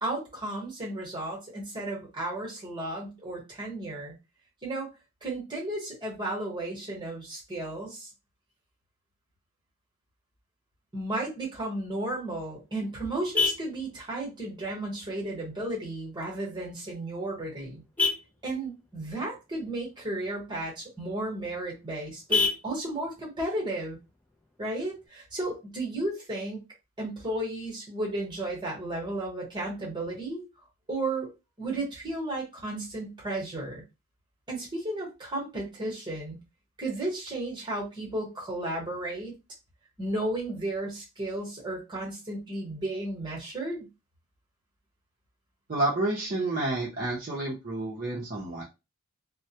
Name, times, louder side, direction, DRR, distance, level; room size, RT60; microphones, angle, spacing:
voice 1, 0.0-4.1 4.6-4.9 5.2-8.1 10.9-17.8 18.4-24.0 24.6-26.6 27.0-30.4 30.9-31.3 31.6-33.8 34.5-36.4 36.8-39.3 40.0-43.9, right 1 dB, 20° right, -3 dB, 1.0 m, -33 dB
Vehicle horn car horn honking, 12.1-25.1, left 4 dB, 5° left, 0.3 m, -36 dB
voice 2, 45.7-48.6, right 2 dB, 40° right, -4 dB, 0.5 m, -29 dB
2.1 x 2.1 x 2.8 m, 0.25 s
head